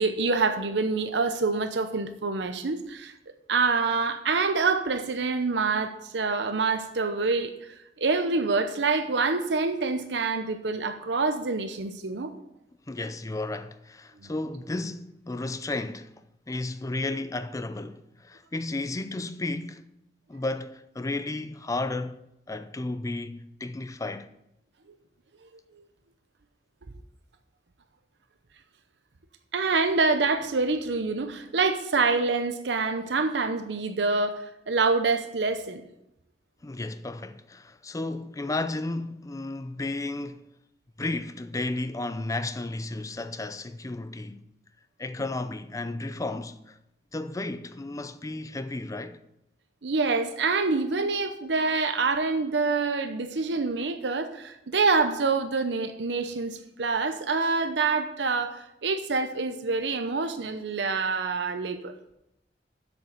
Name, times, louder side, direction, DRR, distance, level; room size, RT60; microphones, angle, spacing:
voice 1, 0.0-3.1 3.5-12.3 29.5-35.8 49.8-61.9, right 4 dB, 80° right, 0.8 m, -26 dB
voice 2, 12.9-16.1 16.5-19.9 20.3-24.3 36.6-40.5 41.0-44.4 45.0-46.8 47.1-49.2, left 2 dB, 20° left, 0.5 m, -33 dB
7.7 x 7.0 x 6.4 m
head